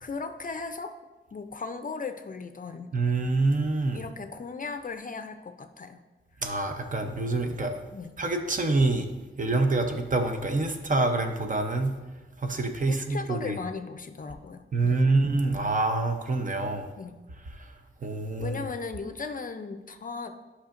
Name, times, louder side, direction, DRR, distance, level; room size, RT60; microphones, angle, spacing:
voice 1, 0.0-1.0 1.3-2.9 3.9-6.0 7.9-8.1 12.9-15.0 17.0-17.2 18.4-20.4, left 4 dB, 40° left, 9 dB, 0.5 m, -37 dB
voice 2, 2.9-4.0 6.4-7.8 8.2-9.1 9.4-11.9 12.4-13.6 14.7-16.9 18.0-18.6, right 2 dB, 40° right, 5 dB, 0.7 m, -26 dB
11.5 x 5.6 x 2.5 m, 1.2 s
wide cardioid pair, 125°, 21 cm